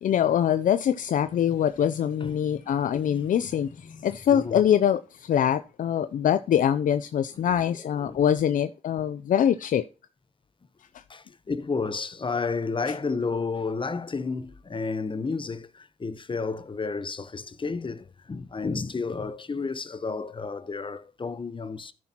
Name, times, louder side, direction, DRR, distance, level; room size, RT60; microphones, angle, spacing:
voice 1, 0.0-9.8, left 9 dB, 80° left, 0.4 m, -24 dB
voice 2, 2.2-2.6 3.1-3.2 3.9-4.0 4.3-4.6 7.4-8.2 11.1-21.9, left 4 dB, 40° left, 0.9 m, -32 dB
14.0 x 6.1 x 2.9 m
cardioid pair, 65°, 13 cm